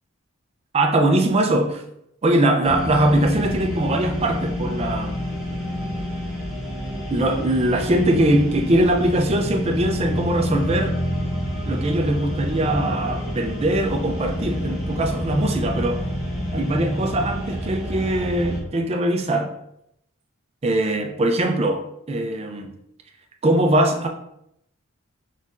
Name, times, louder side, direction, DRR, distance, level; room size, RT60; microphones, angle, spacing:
voice 1, 0.7-1.8 2.2-5.2 7.1-11.0 11.7-16.0 16.5-19.5 20.6-22.7 23.4-24.1, right 1 dB, 30° right, 3 dB, 0.5 m, -21 dB
sound 1, 2.6-18.6, equal, ahead, 1.2 m, -28 dB
4.1 x 4.0 x 2.5 m, 0.77 s
head